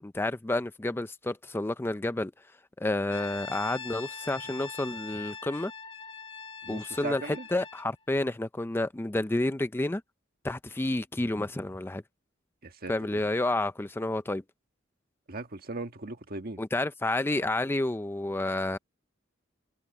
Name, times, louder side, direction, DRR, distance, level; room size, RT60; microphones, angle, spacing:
voice 1, 0.0-2.3 2.8-5.7 6.7-10.0 10.4-12.0 12.9-14.4 16.6-18.8, left 2 dB, 10° left, 0.4 m, -30 dB
Brass instrument, 3.1-7.9, left 5 dB, 30° left, 2.3 m, -42 dB
voice 2, 6.6-7.5 12.6-13.2 15.3-16.6, right 2 dB, 50° right, 1.6 m, -38 dB
head